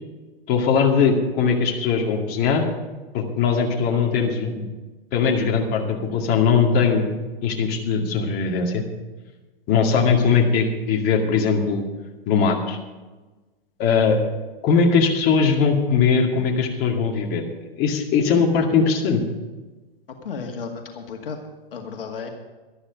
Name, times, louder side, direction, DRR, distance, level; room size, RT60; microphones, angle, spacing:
voice 1, 0.5-2.6 3.1-4.6 5.1-7.1 7.4-8.8 9.7-11.8 12.3-12.8 13.8-14.2 14.6-17.4 17.8-19.2, left 5 dB, 35° left, 1 dB, 2.1 m, -20 dB
voice 2, 20.2-21.4 21.7-22.3, left 5 dB, 70° left, 3 dB, 2.0 m, -33 dB
12.5 x 12.0 x 5.2 m, 1.2 s
hypercardioid pair, 115°, 30 cm